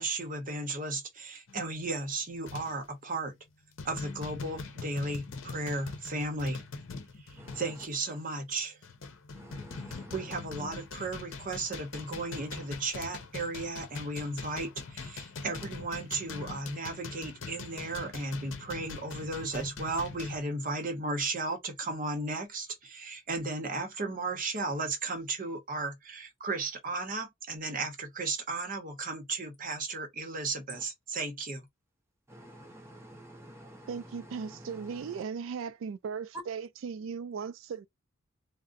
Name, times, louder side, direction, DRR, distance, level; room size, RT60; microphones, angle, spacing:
voice 1, 0.0-3.4 3.8-6.6 7.2-8.8 9.9-31.6, right 3 dB, 40° right, 0.8 m, -35 dB
sound 1, 1.5-1.7 2.4-2.9 3.3-3.5 3.8-7.9 8.5-20.4, left 4 dB, 75° left, 0.7 m, -43 dB
voice 2, 7.4-7.7 9.3-10.2 30.7-30.8 32.3-35.2, equal, 15° right, 0.6 m, -50 dB
voice 3, 33.9-37.9, right 6 dB, 70° right, 0.3 m, -37 dB
2.5 x 2.0 x 3.7 m
head